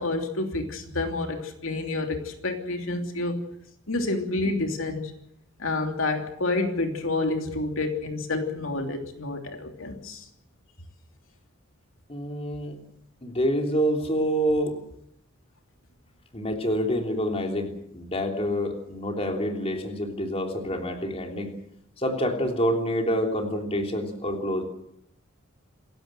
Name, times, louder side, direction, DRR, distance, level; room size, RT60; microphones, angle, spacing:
voice 1, 0.0-3.4 3.9-5.1 5.6-10.2, left 2 dB, 75° left, 4 dB, 3.1 m, -29 dB
voice 2, 12.1-12.8 13.2-14.7 16.3-21.5 22.0-24.6, equal, 30° left, 3 dB, 3.3 m, -27 dB
28.0 x 16.0 x 7.7 m, 0.75 s
head